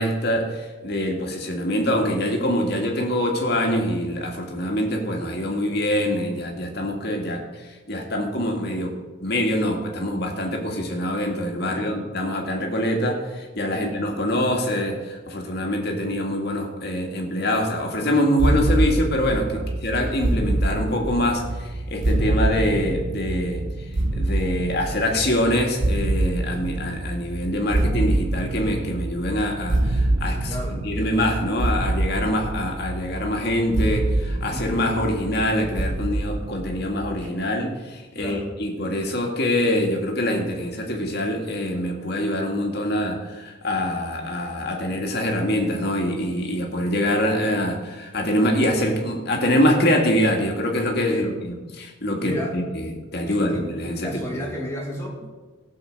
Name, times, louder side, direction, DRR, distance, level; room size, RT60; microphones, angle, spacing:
voice 1, 0.0-23.6 24.1-54.4, left 1 dB, 55° left, 1 dB, 2.1 m, -24 dB
voice 2, 11.6-12.0 13.7-13.9 19.5-19.7 30.5-30.8 34.5-34.9 38.1-38.5 51.1-51.3 52.2-52.6 53.3-53.7 54.0-55.3, equal, 15° left, -3 dB, 2.7 m, -33 dB
sound 1, 18.4-37.3, right 1 dB, 70° right, 1.0 m, -26 dB
16.5 x 5.7 x 6.6 m, 1.3 s
head